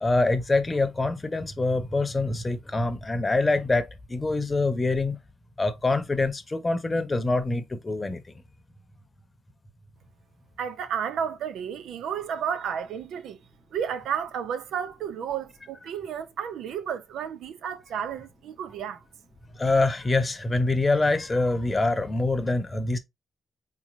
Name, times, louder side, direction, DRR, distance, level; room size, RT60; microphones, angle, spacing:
voice 1, 0.0-5.2 5.6-8.2 19.6-23.0, left 2 dB, 30° left, 0.8 m, -25 dB
voice 2, 10.6-13.4 13.7-19.0, right 8 dB, 80° right, 0.4 m, -32 dB
3.7 x 3.0 x 2.6 m
supercardioid pair, 55°, 0 cm